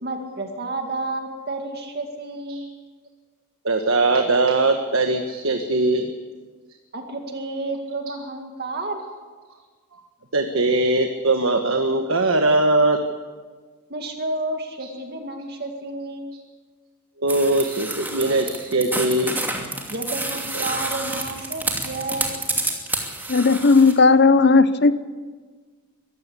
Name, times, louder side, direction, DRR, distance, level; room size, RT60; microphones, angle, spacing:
voice 1, 0.0-2.7 6.9-9.3 13.9-16.3 19.9-22.4, right 2 dB, 45° right, 4 dB, 2.2 m, -31 dB
voice 2, 3.6-6.1 9.9-10.0 10.3-13.0 17.2-19.4 20.3-20.7, right 2 dB, 60° right, 5 dB, 1.5 m, -21 dB
sound 1, 17.3-23.9, right 2 dB, 10° right, 2.6 m, -28 dB
voice 3, 23.3-25.0, left 4 dB, 50° left, 14 dB, 0.9 m, -15 dB
23.5 x 14.5 x 8.5 m, 1.5 s
head